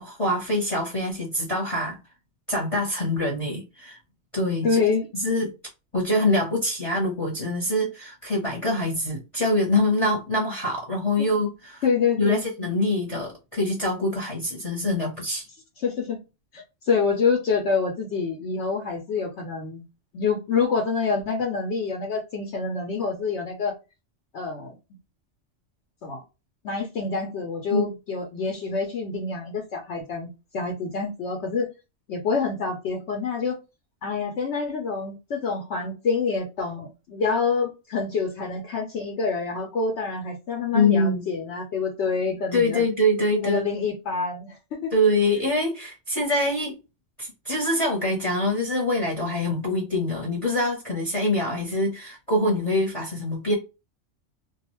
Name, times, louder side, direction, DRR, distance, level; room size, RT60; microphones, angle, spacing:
voice 1, 0.0-2.0 2.5-4.0 4.3-4.8 5.2-5.5 5.9-11.8 12.2-15.4 27.7-27.8 40.7-41.2 42.5-43.6 44.9-46.8 47.2-53.5, left 1 dB, 30° left, 0.9 m, -24 dB
voice 2, 4.6-5.1 11.2-11.3 11.8-12.4 15.8-16.2 16.5-19.8 20.1-23.7 24.3-24.7 26.0-26.2 26.6-31.7 32.1-33.6 34.0-42.9 43.3-44.9, left 5 dB, 70° left, 1.0 m, -27 dB
2.4 x 2.3 x 3.0 m
omnidirectional pair, 1.2 m